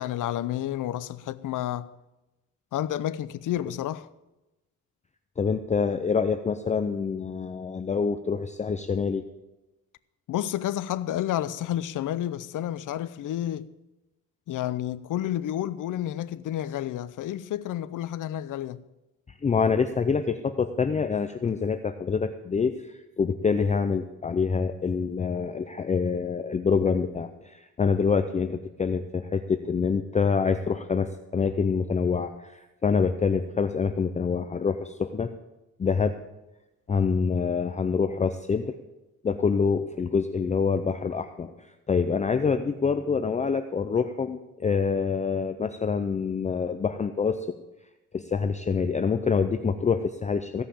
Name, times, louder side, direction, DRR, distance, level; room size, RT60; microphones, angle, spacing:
voice 1, 0.0-1.9 2.7-4.1 10.3-13.7 14.5-18.8, left 12 dB, 60° left, 0.7 m, -30 dB
voice 2, 5.4-9.2 19.4-35.3 35.8-36.2 36.9-38.8 39.2-41.5 41.9-47.6 48.1-50.6, left 5 dB, 20° left, 0.5 m, -26 dB
15.5 x 5.7 x 8.5 m
cardioid pair, 135°, 35 cm